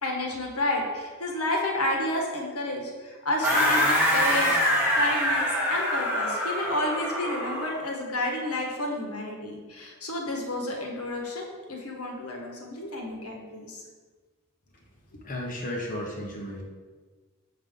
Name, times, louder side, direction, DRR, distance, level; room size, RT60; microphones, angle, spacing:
voice 1, 0.0-4.6 4.9-13.8, left 1 dB, 75° left, 0 dB, 1.4 m, -30 dB
sound 1, 3.4-7.8, equal, 10° right, 1.8 m, -25 dB
voice 2, 15.2-16.6, left 1 dB, 40° left, -2 dB, 1.0 m, -33 dB
6.6 x 5.7 x 3.7 m, 1.4 s
head